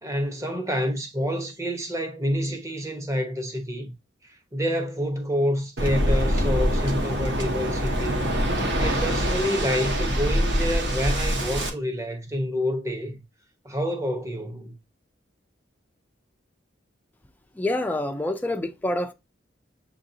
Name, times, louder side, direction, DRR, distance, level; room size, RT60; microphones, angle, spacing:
voice 1, 0.0-3.9 4.2-8.4 8.8-13.2 13.6-14.7, equal, 15° right, 0.9 m, -28 dB
Waves surf, 5.8-11.7, equal, 65° right, 1.0 m, -24 dB
voice 2, 17.5-19.1, left 1 dB, 10° left, 0.4 m, -27 dB
7.5 x 2.5 x 2.7 m
head